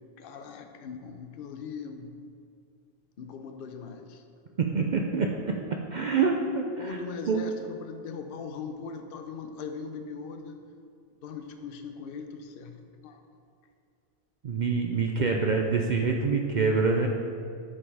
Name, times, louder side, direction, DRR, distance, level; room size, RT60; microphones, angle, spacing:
voice 1, 0.2-2.1 3.2-4.2 6.8-10.6 11.2-12.8 13.0-13.2, left 5 dB, 60° left, 6 dB, 0.8 m, -40 dB
voice 2, 4.6-5.3 5.9-7.0 7.3-7.4 14.4-17.1, right 4 dB, 55° right, 1 dB, 0.5 m, -26 dB
8.4 x 5.0 x 4.8 m, 2.4 s
omnidirectional pair, 1.2 m